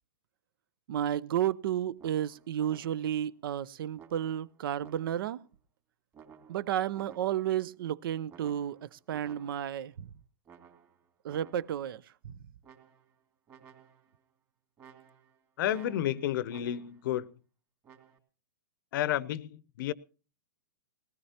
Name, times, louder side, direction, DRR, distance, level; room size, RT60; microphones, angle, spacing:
voice 1, 0.9-5.4 6.5-10.1 11.2-12.0, right 10 dB, 65° right, 0.6 m, -32 dB
sound 1, 2.0-3.3 4.0-5.4 6.1-7.6 8.3-9.9 10.4-11.9 12.6-13.2 13.5-14.2 14.8-17.1 17.8-18.2, right 7 dB, 25° right, 2.3 m, -56 dB
voice 2, 15.6-17.3 18.9-19.9, left 12 dB, 55° left, 0.7 m, -31 dB
20.5 x 17.5 x 2.8 m
hypercardioid pair, 145°, 13 cm